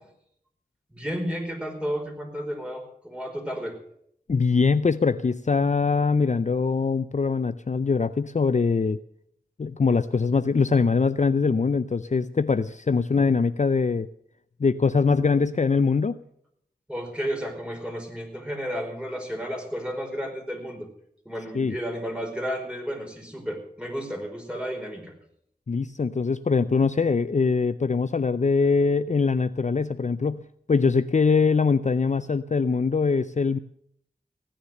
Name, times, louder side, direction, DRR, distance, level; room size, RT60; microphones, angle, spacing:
voice 1, 0.9-3.8 16.9-20.9 21.2-25.1, equal, 5° right, 2 dB, 4.8 m, -32 dB
voice 2, 4.3-9.0 9.6-14.1 14.6-16.2 21.5-21.8 25.7-30.4 30.7-33.6, left 4 dB, 45° left, 12 dB, 0.5 m, -22 dB
16.0 x 10.0 x 6.6 m, 0.69 s
wide cardioid pair, 40°, 16 cm